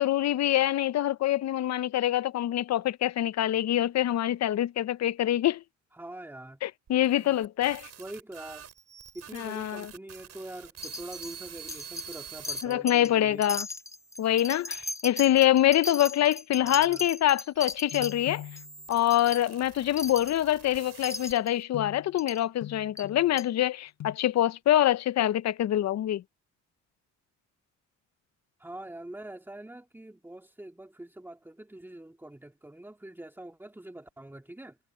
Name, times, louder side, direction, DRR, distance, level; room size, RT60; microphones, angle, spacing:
voice 1, 0.0-5.6 6.6-7.9 9.3-9.9 12.6-13.7 14.2-18.4 18.9-26.2, left 13 dB, 60° left, 0.7 m, -25 dB
voice 2, 5.9-6.6 8.0-8.7 9.1-13.4 16.6-17.1 28.6-34.8, right 1 dB, 5° right, 2.3 m, -44 dB
sound 1, 6.9-12.6 13.3-14.8 15.6-21.6, right 8 dB, 60° right, 4.9 m, -48 dB
Wind chime, 10.8-11.3 11.7-12.2 12.4-13.1 13.4-18.1 18.6-18.7 18.9-19.4 20.0-20.4 21.0-21.5 22.2-22.4 23.0-23.1 23.4-23.5, left 3 dB, 10° left, 0.8 m, -37 dB
sound 2, 17.9-19.1 19.5-19.6 21.7-22.2 22.6-23.4 24.0-24.2, left 12 dB, 80° left, 6.8 m, -42 dB
cardioid pair, 90°, 30 cm